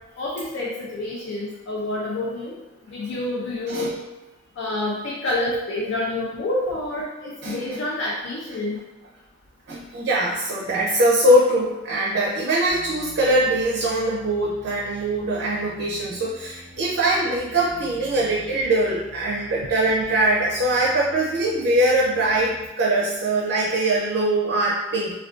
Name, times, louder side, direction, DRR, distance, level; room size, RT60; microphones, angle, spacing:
voice 1, 0.2-2.5 2.9-3.9 4.6-8.8, left 2 dB, 85° left, -4 dB, 0.4 m, -28 dB
voice 2, 9.7-25.2, right 1 dB, 65° right, -5 dB, 0.4 m, -22 dB
sound 1, 12.7-22.7, left 1 dB, 50° left, 0.8 m, -46 dB
2.4 x 2.2 x 2.4 m, 1.0 s
head